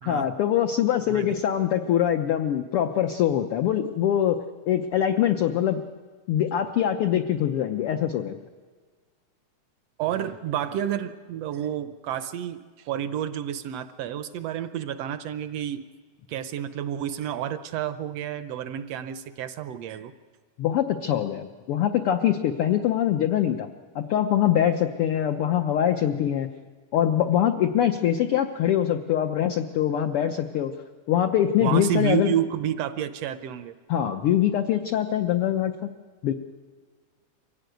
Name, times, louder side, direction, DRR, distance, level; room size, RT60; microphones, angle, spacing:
voice 1, 0.0-5.8 6.3-8.4 20.6-23.7 23.9-26.5 26.9-30.7 31.1-32.3 33.9-35.9 36.2-36.3, left 10 dB, 85° left, 7 dB, 1.2 m, -23 dB
voice 2, 10.0-15.9 16.3-20.1 31.6-33.8, right 10 dB, 75° right, 12 dB, 1.5 m, -30 dB
24.5 x 16.0 x 9.2 m, 1.5 s
omnidirectional pair, 3.6 m